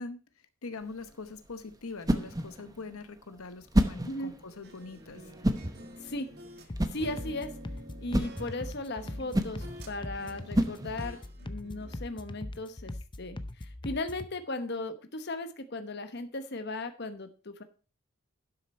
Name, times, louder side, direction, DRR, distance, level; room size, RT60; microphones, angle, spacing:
voice 1, 0.0-5.3, left 3 dB, 85° left, 11 dB, 0.9 m, -43 dB
sound 1, 0.8-11.3, right 1 dB, 15° right, 0.8 m, -32 dB
sound 2, 4.6-6.7 7.0-9.9 10.2-12.0, right 1 dB, 50° right, 1.6 m, -49 dB
voice 2, 6.0-6.3 6.9-7.5 8.0-17.6, left 2 dB, 50° left, 9 dB, 1.0 m, -37 dB
sound 3, 6.7-14.3, left 1 dB, 20° left, 0.6 m, -41 dB
12.0 x 6.7 x 4.3 m, 0.34 s
head